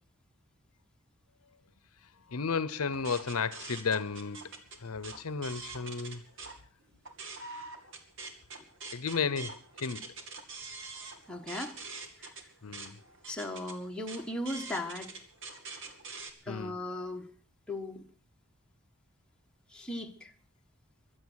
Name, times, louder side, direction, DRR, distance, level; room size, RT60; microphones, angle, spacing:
voice 1, 2.3-6.2 8.9-10.0 12.6-13.0 16.5-16.7, left 5 dB, 80° left, 0.8 m, -33 dB
sound 1, 2.9-6.6 6.9-16.3, right 4 dB, 60° right, 2.4 m, -45 dB
voice 2, 11.3-11.8 12.2-12.3 13.3-15.1 16.4-17.3 17.7-18.0 19.7-20.3, left 1 dB, 5° left, 1.3 m, -37 dB
23.5 x 7.9 x 6.3 m
head